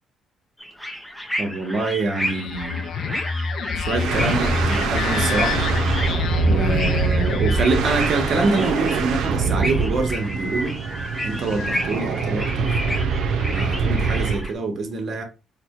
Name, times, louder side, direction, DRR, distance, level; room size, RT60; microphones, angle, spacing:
sound 1, 0.6-14.5, equal, 5° left, 0.6 m, -32 dB
voice 1, 1.4-2.8 3.8-5.6 6.5-10.8 11.2-13.1 13.5-15.2, right 3 dB, 50° right, 1.1 m, -25 dB
sound 2, 2.2-8.8, left 5 dB, 60° left, 0.3 m, -27 dB
sound 3, 3.9-14.5, right 5 dB, 85° right, 0.5 m, -24 dB
4.3 x 2.2 x 2.8 m
cardioid pair, 120°, 0 cm